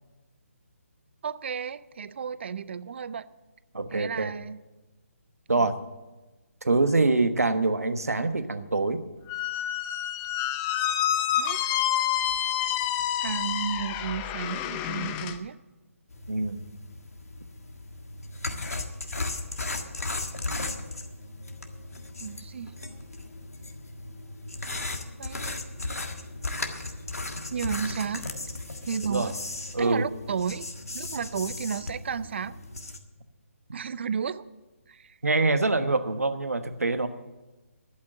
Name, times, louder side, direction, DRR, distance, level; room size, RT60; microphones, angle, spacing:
voice 1, 1.2-3.3 3.9-4.6 5.5-5.7 11.4-11.8 13.2-15.6 22.2-22.7 25.2-25.6 27.5-28.2 28.9-29.4 29.8-30.7 30.9-32.5 33.7-34.5 34.9-35.2, right 7 dB, 50° right, 17 dB, 0.6 m, -33 dB
voice 2, 3.7-4.3 5.5-5.8 6.6-9.0 16.3-16.6 29.0-29.3 29.7-30.1 35.2-37.1, right 3 dB, 85° right, 10 dB, 1.3 m, -25 dB
Squeak, 9.3-15.4, left 11 dB, 15° left, 0.6 m, -28 dB
sound 1, 16.1-33.0, left 2 dB, 85° left, 1.6 m, -36 dB
11.5 x 8.6 x 9.8 m, 1.1 s
figure-of-eight pair, 150°, 8 cm